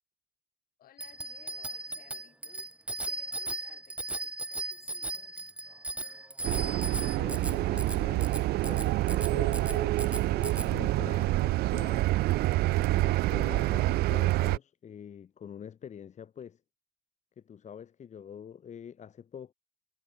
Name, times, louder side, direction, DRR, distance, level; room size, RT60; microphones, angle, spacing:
voice 1, 0.8-5.5, left 11 dB, 60° left, 6.5 m, -59 dB
Bicycle bell, 1.0-10.7, right 1 dB, 5° right, 0.9 m, -37 dB
sound 1, 6.4-14.6, right 18 dB, 70° right, 0.4 m, -27 dB
voice 2, 6.9-12.1 12.7-16.6 17.4-19.5, left 8 dB, 45° left, 3.6 m, -45 dB
cardioid pair, 110°, 17 cm